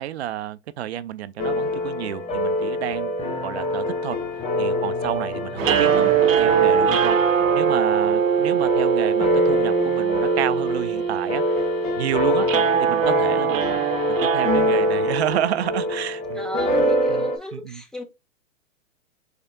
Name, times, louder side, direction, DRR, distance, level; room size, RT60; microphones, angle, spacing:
voice 1, 0.0-3.1 3.4-4.2 4.6-11.7 12.0-12.5 12.8-13.8 14.2-16.5 17.1-17.3 17.5-17.8, right 12 dB, 55° right, 0.6 m, -30 dB
sound 1, 1.4-17.4, left 1 dB, 15° left, 1.3 m, -25 dB
voice 2, 5.5-5.8 12.5-12.9 16.4-18.0, left 1 dB, ahead, 0.6 m, -36 dB
sound 2, 5.6-8.5, right 4 dB, 40° right, 2.1 m, -34 dB
sound 3, 5.6-15.8, right 9 dB, 80° right, 0.9 m, -22 dB
5.0 x 4.5 x 2.4 m
hypercardioid pair, 135°, 39 cm